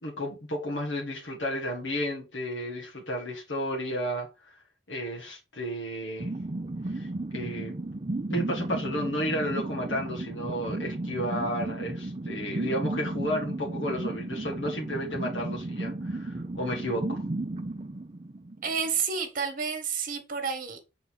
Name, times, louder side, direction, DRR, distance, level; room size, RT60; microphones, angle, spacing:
voice 1, 0.0-4.3 4.9-6.3 6.9-7.1 7.3-7.8 8.3-17.2, equal, 85° left, 1.8 m, -32 dB
sound 1, 6.2-18.9, right 2 dB, 35° right, 0.6 m, -34 dB
voice 2, 18.6-20.8, right 6 dB, 50° right, 1.5 m, -30 dB
6.4 x 4.0 x 4.0 m
head